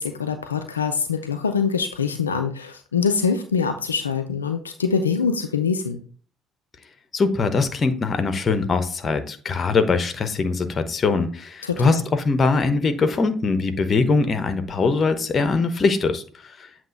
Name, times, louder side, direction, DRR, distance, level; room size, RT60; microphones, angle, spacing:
voice 1, 0.0-6.0 11.6-12.0, left 6 dB, 90° left, 7 dB, 0.4 m, -24 dB
voice 2, 7.1-16.7, left 4 dB, 40° left, 9 dB, 1.0 m, -22 dB
7.8 x 3.0 x 5.3 m, 0.41 s
hypercardioid pair, 50°, 0 cm